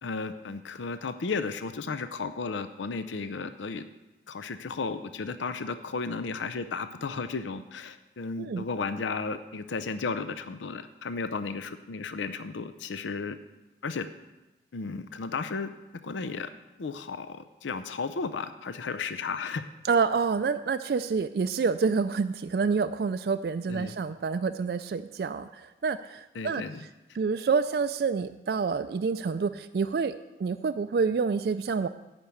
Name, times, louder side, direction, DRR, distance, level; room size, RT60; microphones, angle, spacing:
voice 1, 0.0-3.8 4.3-13.4 13.8-14.1 14.7-15.7 16.0-16.5 16.8-19.6 23.7-23.9 26.3-26.8, left 4 dB, 90° left, 11 dB, 0.5 m, -34 dB
voice 2, 19.8-26.6 27.2-30.1 30.4-31.9, right 5 dB, 55° right, 11 dB, 0.3 m, -28 dB
10.5 x 5.4 x 8.4 m, 1.0 s
head